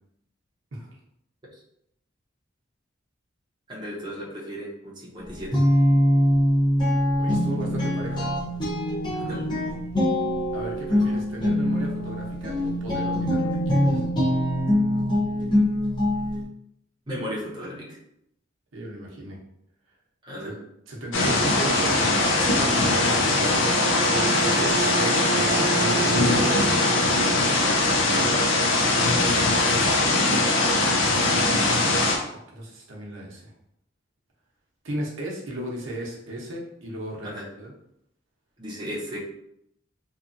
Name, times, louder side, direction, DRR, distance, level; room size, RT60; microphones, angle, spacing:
voice 1, 3.7-5.6 9.1-9.5 17.1-18.0 20.2-20.5 28.1-28.3 37.2-37.5 38.6-39.2, equal, 25° right, -5 dB, 0.7 m, -35 dB
Guitar, 5.2-16.4, equal, 25° left, 0.7 m, -23 dB
voice 2, 7.2-8.3 10.5-14.0 18.7-19.4 20.5-20.6 20.9-23.3 23.9-26.9 28.0-28.5 29.1-30.2 31.2-31.9 32.5-33.5 34.8-37.7, right 1 dB, 85° right, -2 dB, 0.8 m, -35 dB
sound 1, 21.1-32.2, left 2 dB, 75° left, 0.5 m, -21 dB
Bowed string instrument, 23.5-28.0, right 5 dB, 60° right, 0.3 m, -31 dB
2.9 x 2.4 x 2.5 m, 0.76 s
head